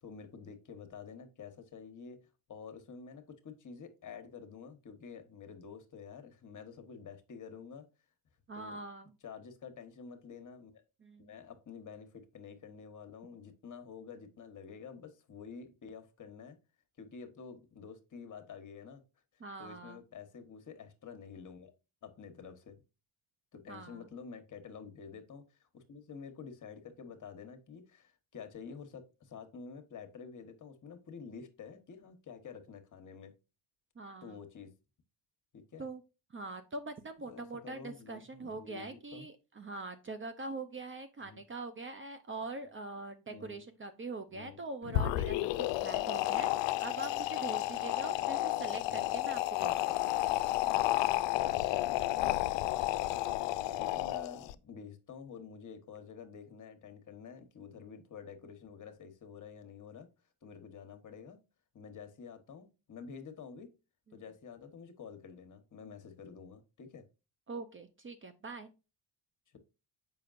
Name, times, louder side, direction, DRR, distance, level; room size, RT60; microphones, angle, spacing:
voice 1, 0.0-2.2 2.5-7.9 8.5-8.8 9.2-10.8 11.2-16.6 17.0-19.0 19.6-21.7 22.0-22.8 23.5-33.4 34.2-34.7 35.5-35.9 37.2-39.3 41.2-41.4 43.3-43.6 44.3-44.6 47.1-47.3 48.8-49.1 52.4-53.1 53.7-60.1 60.4-61.4 61.7-63.7 64.1-67.1, left 6 dB, 40° left, 1.3 m, -49 dB
voice 2, 8.5-9.1 11.0-11.3 19.4-20.0 23.7-24.1 34.0-34.4 35.8-36.0 36.3-45.4 45.8-50.2 64.1-64.2 67.5-68.7, right 3 dB, 25° right, 0.6 m, -43 dB
sound 1, 44.8-54.5, left 15 dB, 70° left, 0.5 m, -32 dB
6.8 x 5.5 x 2.5 m
cardioid pair, 100°, 46 cm